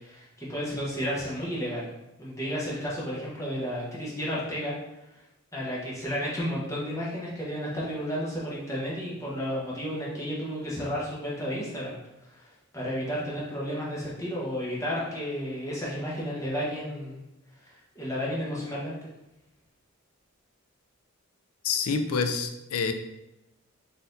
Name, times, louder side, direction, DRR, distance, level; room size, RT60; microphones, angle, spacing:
voice 1, 0.0-1.9 2.2-4.7 5.1-5.2 5.5-11.9 12.2-17.2 17.6-18.9, equal, 15° left, -7 dB, 1.0 m, -32 dB
voice 2, 21.6-22.9, left 5 dB, 85° left, 7 dB, 0.5 m, -27 dB
4.1 x 2.7 x 3.8 m, 0.92 s
head